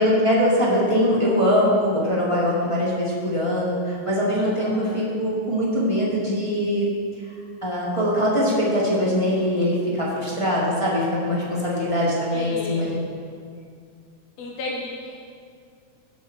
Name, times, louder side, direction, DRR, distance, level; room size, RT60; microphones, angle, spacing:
voice 1, 0.0-6.9 7.6-12.9, equal, 15° left, -7 dB, 1.3 m, -22 dB
voice 2, 4.4-5.0 12.3-13.0 14.4-15.2, left 2 dB, 65° left, -2 dB, 2.2 m, -34 dB
15.5 x 5.8 x 4.5 m, 2.3 s
omnidirectional pair, 3.4 m